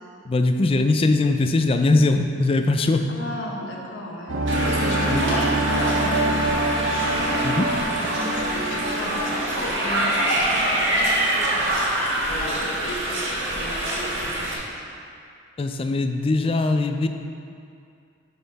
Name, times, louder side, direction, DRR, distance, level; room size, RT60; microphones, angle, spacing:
voice 1, 0.3-3.1 5.1-5.2 7.4-7.7 15.6-17.1, left 2 dB, 30° left, 7 dB, 0.3 m, -21 dB
voice 2, 3.1-11.6 11.9-14.7, left 1 dB, 70° left, -2 dB, 1.0 m, -34 dB
sound 1, 4.3-9.9 10.2-10.3, right 2 dB, 85° right, 0.9 m, -26 dB
sound 2, 4.5-14.5, right 1 dB, 70° right, 1.4 m, -25 dB
10.5 x 3.9 x 4.1 m, 2.4 s
head